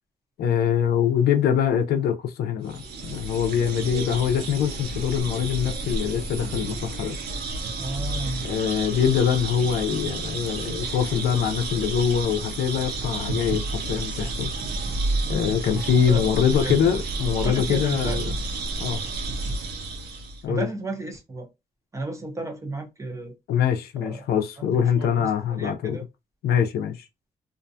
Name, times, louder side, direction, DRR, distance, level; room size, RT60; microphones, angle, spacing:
voice 1, 0.4-7.2 8.4-14.5 15.3-18.3 18.8-19.0 20.4-20.7 23.5-26.0 26.4-27.0, left 8 dB, 80° left, 0.5 m, -24 dB
sound 1, 2.6-20.4, right 3 dB, 85° right, 0.7 m, -31 dB
voice 2, 7.8-8.4 16.1-16.2 16.6-16.7 17.4-18.2 18.8-19.0 20.5-21.5 21.9-23.3 24.0-24.2 24.7-25.3 25.6-26.0, right 2 dB, 20° right, 0.7 m, -33 dB
2.5 x 2.2 x 2.6 m
cardioid pair, 130°, 16 cm